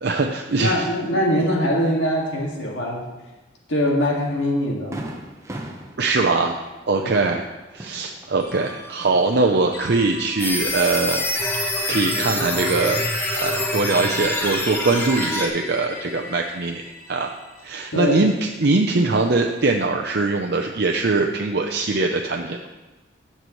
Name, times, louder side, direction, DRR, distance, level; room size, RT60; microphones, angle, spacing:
voice 1, 0.0-0.7 1.1-1.5 6.0-6.6 6.9-7.4 7.7-11.2 11.9-17.3 17.6-22.7, right 3 dB, 60° right, 2 dB, 0.6 m, -22 dB
voice 2, 0.6-3.0 3.7-5.0 7.0-7.3 17.9-18.4, equal, 75° left, -2 dB, 2.0 m, -22 dB
Fireworks, 3.9-4.0 4.4-4.5 4.9-8.7 9.0-9.9, right 1 dB, 15° right, 0.8 m, -38 dB
sound 1, 8.4-19.0, left 2 dB, 55° left, 1.5 m, -37 dB
sound 2, 10.4-15.5, left 1 dB, 10° left, 1.0 m, -25 dB
16.0 x 6.7 x 3.1 m, 1.1 s
head